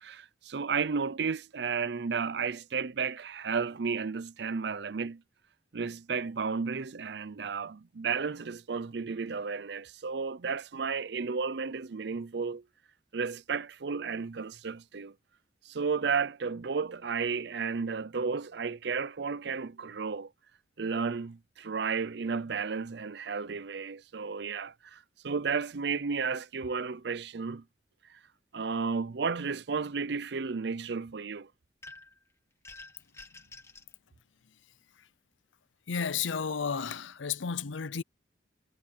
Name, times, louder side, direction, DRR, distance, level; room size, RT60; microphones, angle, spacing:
voice 1, 0.0-5.2 5.7-12.6 13.1-15.1 15.7-20.3 20.8-27.6 28.1-28.2 28.5-31.5, right 5 dB, 60° right, 0.5 m, -33 dB
sound 1, 31.8-32.2 32.6-33.9, left 3 dB, 15° left, 1.6 m, -49 dB
voice 2, 35.9-38.0, left 6 dB, 90° left, 0.7 m, -32 dB
head